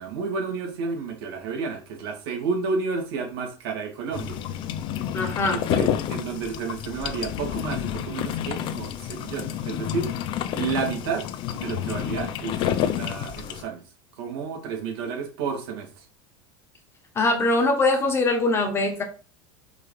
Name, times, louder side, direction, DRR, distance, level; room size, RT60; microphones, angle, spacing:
voice 1, 0.0-4.4 5.5-10.1 10.5-13.8 14.2-16.1, right 5 dB, 75° right, 2.7 m, -31 dB
sound 1, 4.1-13.6, left 10 dB, 40° left, 0.7 m, -29 dB
voice 2, 5.1-5.6 17.1-19.0, left 2 dB, 20° left, 1.5 m, -22 dB
5.2 x 4.9 x 5.0 m
supercardioid pair, 150°, 13 cm